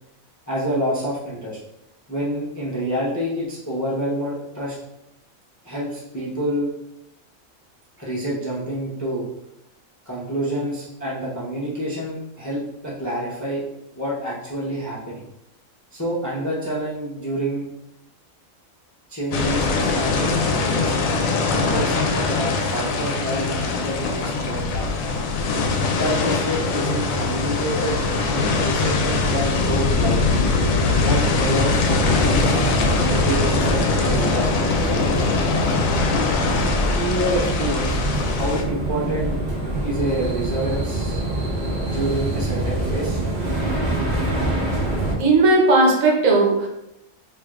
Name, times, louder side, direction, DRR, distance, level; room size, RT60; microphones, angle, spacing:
voice 1, 0.5-1.6 2.1-4.8 5.6-6.7 8.0-9.3 10.1-13.6 14.0-15.2 15.9-17.7 19.1-20.4 20.7-21.1 21.5-24.9 25.5-30.5 31.0-35.4 36.1-36.2 36.9-38.0 38.2-39.4 39.8-41.2 41.8-43.2, right 1 dB, 20° left, -6 dB, 0.5 m, -28 dB
sound 1, 19.3-38.6, left 3 dB, 80° left, 1.0 m, -22 dB
sound 2, 31.9-45.1, right 1 dB, 40° right, 0.9 m, -25 dB
voice 2, 45.2-46.7, right 2 dB, 75° right, -1 dB, 1.2 m, -16 dB
4.6 x 2.7 x 2.4 m, 0.87 s
omnidirectional pair, 1.4 m